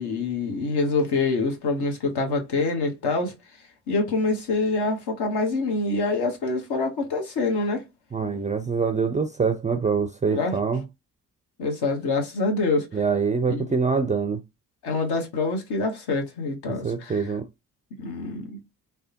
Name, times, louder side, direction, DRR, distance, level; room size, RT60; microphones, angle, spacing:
voice 1, 0.0-3.3 3.9-7.8 10.3-10.6 11.6-12.9 13.5-13.7 14.8-17.3 18.0-18.6, left 3 dB, 55° left, 1.2 m, -26 dB
voice 2, 8.1-10.8 12.9-14.4 16.8-17.5, right 5 dB, 15° right, 0.4 m, -24 dB
3.3 x 2.1 x 2.8 m
hypercardioid pair, 45°, 46 cm